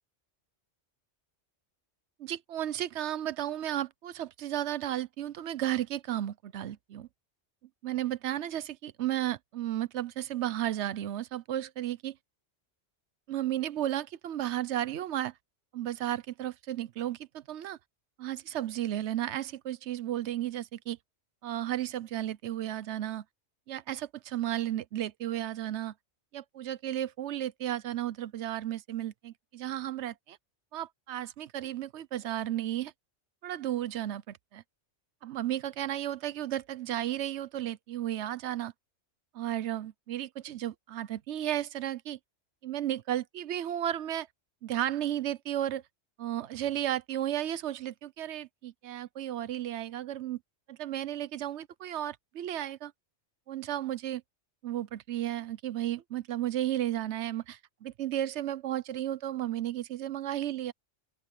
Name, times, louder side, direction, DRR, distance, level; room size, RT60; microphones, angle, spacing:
voice 1, 2.2-7.1 7.8-12.2 13.3-15.3 15.7-17.8 18.2-21.0 21.4-23.2 23.7-25.9 26.3-30.4 30.7-32.9 33.4-34.6 35.2-38.7 39.3-42.2 42.6-44.3 44.6-45.8 46.2-50.4 50.7-52.9 53.5-54.2 54.6-60.7, right 12 dB, 75° right, 0.9 m, -33 dB
open air
omnidirectional pair, 1.2 m